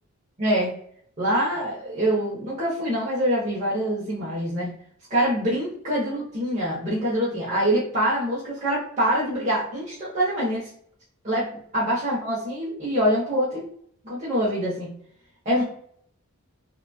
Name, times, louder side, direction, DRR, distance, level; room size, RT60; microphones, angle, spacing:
voice 1, 0.4-0.7 1.2-4.7 5.1-10.7 11.2-13.7 14.0-14.9 15.4-15.6, equal, 35° right, -8 dB, 0.7 m, -25 dB
2.9 x 2.2 x 2.2 m, 0.64 s
head